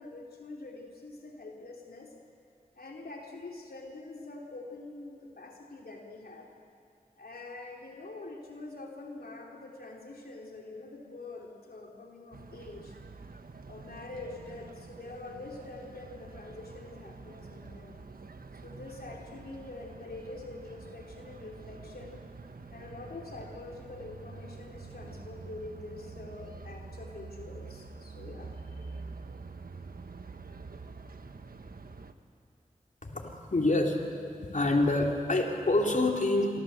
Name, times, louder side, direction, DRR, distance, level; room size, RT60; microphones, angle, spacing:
voice 1, 0.0-2.1 2.7-6.5 7.2-13.0 13.7-18.0 18.6-22.2 22.7-29.0, left 2 dB, 85° left, 0 dB, 3.0 m, -45 dB
sound 1, 12.3-32.1, right 4 dB, 75° right, 1.4 m, -47 dB
voice 2, 33.0-34.2 34.5-36.6, left 2 dB, 55° left, 1 dB, 3.5 m, -27 dB
28.5 x 24.5 x 8.1 m, 2.6 s
wide cardioid pair, 55°, 15 cm